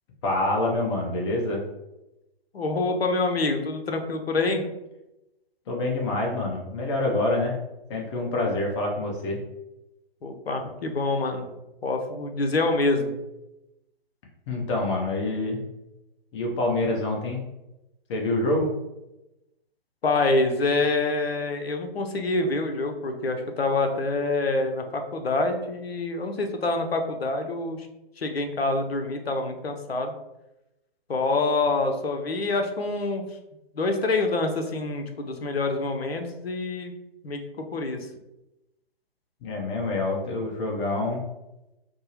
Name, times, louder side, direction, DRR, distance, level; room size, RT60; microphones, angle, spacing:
voice 1, 0.2-1.6 5.7-7.6 7.9-9.4 14.5-15.6 16.3-17.4 18.1-18.7 39.4-41.2, left 2 dB, 30° left, 0 dB, 0.7 m, -26 dB
voice 2, 2.5-4.6 10.2-11.5 11.8-13.2 20.0-27.9 28.2-30.1 31.1-33.2 33.7-36.9 37.2-38.0, left 3 dB, 85° left, 5 dB, 0.7 m, -26 dB
4.4 x 2.0 x 3.0 m, 0.95 s
figure-of-eight pair, 130°, 30 cm